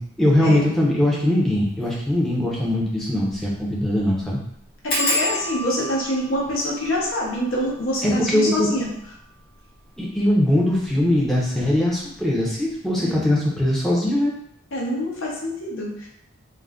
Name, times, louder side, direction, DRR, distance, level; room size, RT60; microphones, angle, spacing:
voice 1, 0.0-4.4 8.0-8.7 10.0-14.3, left 1 dB, ahead, -5 dB, 0.5 m, -21 dB
sound 1, 1.7-1.9 2.3-2.4 2.7-2.8 3.3-3.6 3.8-3.9 4.9-10.2 10.8-11.4 11.7-12.0 12.3-12.4, left 1 dB, 45° left, 1.0 m, -31 dB
voice 2, 4.8-8.9 13.0-13.1 14.7-16.1, equal, 70° left, -3 dB, 0.7 m, -25 dB
2.4 x 2.1 x 3.4 m, 0.71 s
head